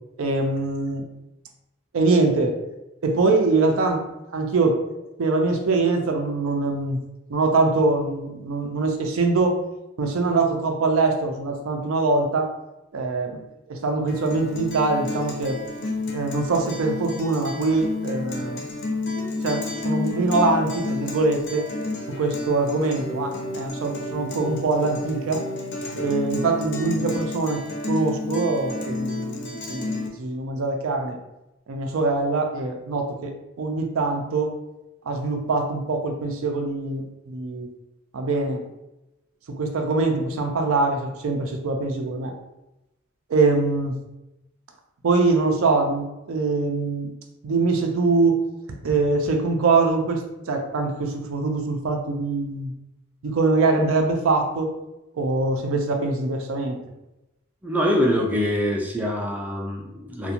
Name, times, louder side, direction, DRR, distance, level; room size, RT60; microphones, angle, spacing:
voice 1, 0.2-1.0 1.9-2.6 3.0-4.0 4.3-4.8 5.2-7.0 7.3-9.6 10.0-12.5 12.9-15.6 16.1-18.6 19.4-21.7 22.1-25.5 26.0-31.2 31.7-34.6 35.1-37.7 38.1-38.6 39.6-42.3 43.3-43.9 45.0-47.1 47.4-48.4 48.8-52.7 53.2-54.7 55.1-56.8, right 3 dB, 80° right, 3 dB, 0.4 m, -23 dB
Guitar, 14.1-30.1, left 2 dB, 60° left, 0.5 m, -31 dB
voice 2, 57.6-60.3, equal, 10° right, -1 dB, 0.3 m, -24 dB
2.4 x 2.2 x 2.8 m, 0.93 s
head